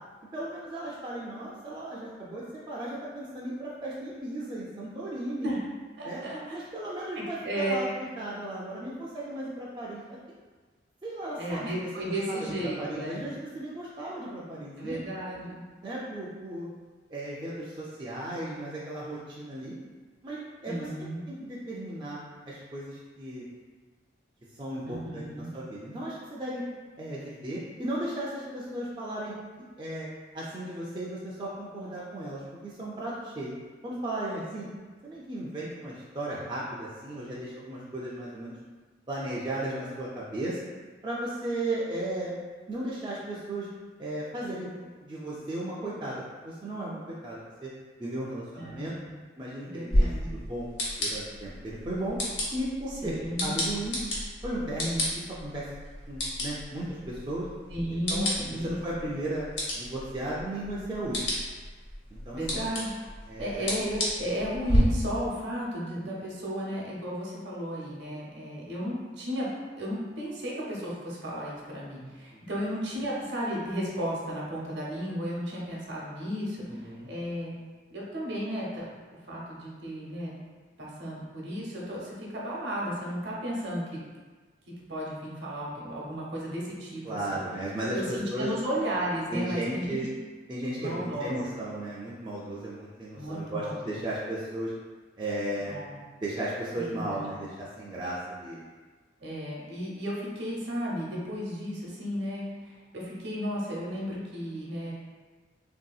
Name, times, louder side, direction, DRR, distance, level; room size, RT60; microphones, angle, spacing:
voice 1, 0.3-5.5 6.0-6.2 6.5-10.2 11.0-11.7 12.3-15.0 15.8-16.7 17.1-19.8 20.2-20.9 21.3-22.2 22.4-23.5 24.6-26.6 27.0-29.3 29.8-30.1 30.3-33.5 33.8-34.7 35.0-38.5 39.1-40.6 41.0-42.3 42.7-43.7 44.0-47.7 48.0-48.9 49.4-50.7 50.9-52.2 52.5-54.0 54.4-55.6 56.1-57.5 57.9-58.3 58.6-59.4 59.7-61.3 62.1-62.6 63.3-63.7 72.3-72.4 76.7-77.1 87.0-88.5 89.3-90.1 90.5-94.7 95.2-95.7 96.2-98.7, right 1 dB, 25° right, -6 dB, 0.3 m, -35 dB
voice 2, 6.0-6.6 7.1-7.9 11.4-13.3 14.8-15.6 20.7-21.2 24.8-25.5 48.6-49.1 49.6-50.3 53.0-53.5 57.7-58.7 62.3-63.1 63.4-69.5 69.7-77.5 77.9-80.3 80.8-84.0 84.9-87.4 87.9-90.0 90.8-91.6 93.1-94.0 95.7-96.0 96.8-97.4 99.2-104.9, equal, 65° right, -4 dB, 0.7 m, -34 dB
sound 1, 49.9-64.8, left 1 dB, 80° left, 0.9 m, -33 dB
3.2 x 2.7 x 2.3 m, 1.4 s
head